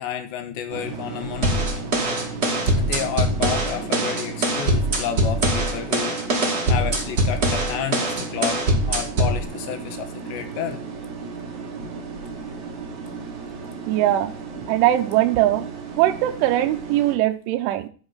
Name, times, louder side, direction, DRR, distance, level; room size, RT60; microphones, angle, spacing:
voice 1, 0.0-1.7 2.8-6.2 6.7-10.8, left 9 dB, 75° left, 8 dB, 3.0 m, -30 dB
sound 1, 0.7-17.2, right 4 dB, 50° right, 2.4 m, -35 dB
sound 2, 1.4-9.4, right 1 dB, 35° right, 1.6 m, -22 dB
voice 2, 13.9-14.3 14.7-15.7 16.0-17.9, right 14 dB, 80° right, 5 dB, 3.0 m, -20 dB
13.5 x 5.4 x 5.6 m, 0.37 s
omnidirectional pair, 6.0 m